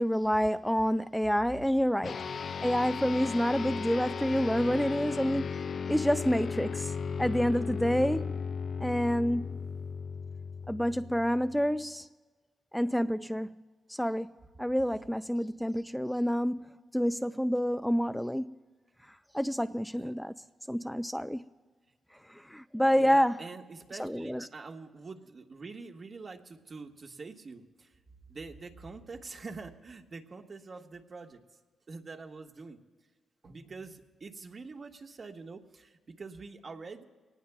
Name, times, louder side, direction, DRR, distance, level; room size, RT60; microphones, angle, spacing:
voice 1, 0.0-2.3 2.6-5.6 5.9-8.4 8.8-9.7 10.7-12.1 12.7-13.5 13.9-14.3 14.6-18.6 19.3-20.3 20.7-21.5 22.3-23.5 24.0-24.5, equal, 5° left, 0.5 m, -28 dB
sound 1, 2.0-11.7, left 6 dB, 60° left, 0.5 m, -36 dB
voice 2, 22.9-27.9 28.3-31.4 31.9-32.8 33.4-37.0, right 4 dB, 50° right, 1.6 m, -45 dB
24.0 x 19.0 x 2.4 m
supercardioid pair, 45°, 0 cm